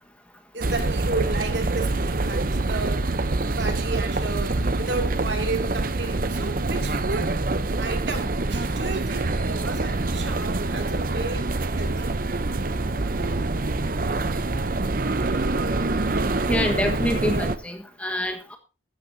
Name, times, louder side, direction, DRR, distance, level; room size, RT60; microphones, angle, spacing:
voice 1, 0.5-3.1 3.4-7.3 7.8-11.5 11.7-12.2, right 3 dB, 65° right, 2.7 m, -32 dB
sound 1, 0.6-17.6, right 2 dB, 45° right, 0.8 m, -25 dB
voice 2, 16.5-18.6, left 1 dB, 5° left, 1.5 m, -26 dB
15.0 x 13.5 x 2.8 m
head